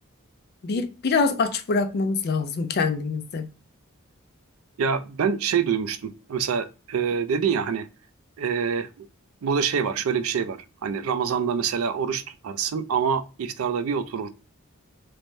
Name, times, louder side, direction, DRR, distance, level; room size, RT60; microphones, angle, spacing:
voice 1, 0.6-3.5, left 4 dB, 50° left, 0.4 m, -25 dB
voice 2, 4.8-7.9 8.4-9.1 9.4-14.3, right 6 dB, 75° right, 0.4 m, -26 dB
3.2 x 2.1 x 2.5 m
head